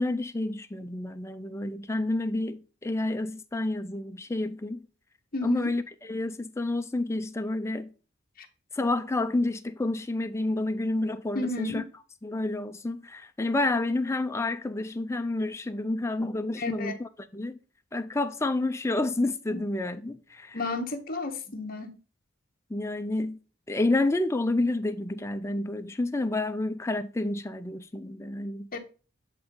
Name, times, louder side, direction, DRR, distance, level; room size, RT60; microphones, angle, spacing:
voice 1, 0.0-4.9 5.4-7.9 8.7-11.8 12.2-17.6 17.9-20.6 22.7-23.4 23.7-28.8, left 2 dB, 15° left, 0.4 m, -29 dB
voice 2, 5.3-5.7 8.4-8.5 11.3-11.9 16.6-16.9 19.5-19.6 20.5-22.0 28.7-28.8, left 2 dB, 45° left, 0.9 m, -32 dB
8.0 x 3.5 x 3.7 m
head